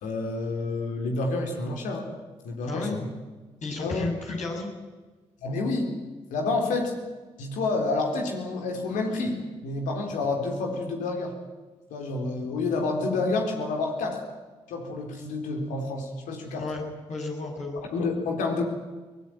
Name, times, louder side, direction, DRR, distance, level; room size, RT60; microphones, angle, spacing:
voice 1, 0.0-2.1 2.4-3.1 3.8-4.1 5.4-5.9 6.3-6.9 7.4-11.3 11.9-14.2 14.7-16.7 17.9-18.7, left 3 dB, 85° left, 2 dB, 4.1 m, -29 dB
voice 2, 3.6-4.7 16.6-16.8 17.1-17.8, left 3 dB, 65° left, -1 dB, 6.9 m, -32 dB
23.0 x 19.0 x 9.2 m, 1.3 s
supercardioid pair, 45°, 13 cm